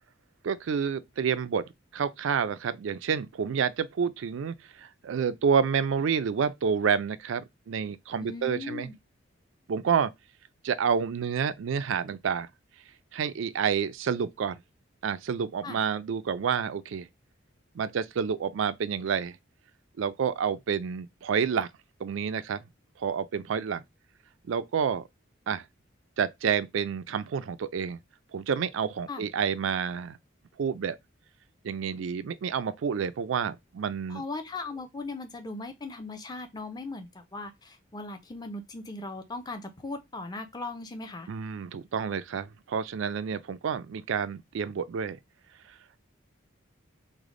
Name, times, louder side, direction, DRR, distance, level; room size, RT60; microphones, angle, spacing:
voice 1, 0.4-8.9 9.7-10.1 10.6-12.5 13.1-14.6 15.0-17.1 17.8-19.4 20.0-21.7 22.0-22.6 23.0-23.8 24.5-25.0 25.5-25.6 26.2-28.0 28.3-30.2 30.6-31.0 31.6-34.2 41.3-45.2, right 6 dB, 75° right, 0.4 m, -29 dB
voice 2, 8.2-8.9 15.6-15.8 29.1-29.3 34.1-41.3, left 3 dB, 20° left, 0.5 m, -38 dB
3.3 x 2.1 x 3.6 m
head